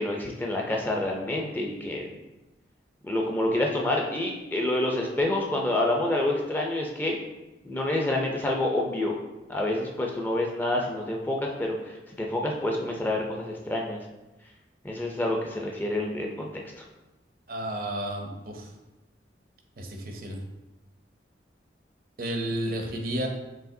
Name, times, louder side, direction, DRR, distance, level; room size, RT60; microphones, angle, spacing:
voice 1, 0.0-2.1 3.0-7.2 7.6-9.2 9.5-14.0 14.8-16.8, left 1 dB, 10° left, -1 dB, 0.4 m, -28 dB
voice 2, 17.5-18.7 19.8-20.4 22.2-23.3, right 1 dB, 55° right, 3 dB, 0.5 m, -32 dB
4.7 x 3.1 x 2.6 m, 1.0 s
head